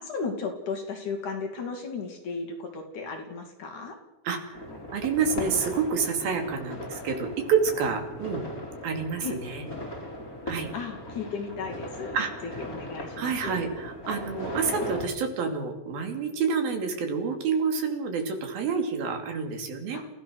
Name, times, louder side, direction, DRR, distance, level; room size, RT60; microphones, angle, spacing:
voice 1, 0.0-4.0 9.2-9.4 10.7-12.2 12.6-13.6 19.9-20.0, left 4 dB, 55° left, 3 dB, 3.8 m, -35 dB
sound 1, 4.5-15.1, left 1 dB, 25° left, 3.2 m, -38 dB
voice 2, 4.9-8.5 8.8-9.7 10.5-10.7 12.1-12.3 13.2-20.0, right 5 dB, 70° right, 5 dB, 4.3 m, -28 dB
29.0 x 16.5 x 6.3 m, 0.95 s
omnidirectional pair, 4.4 m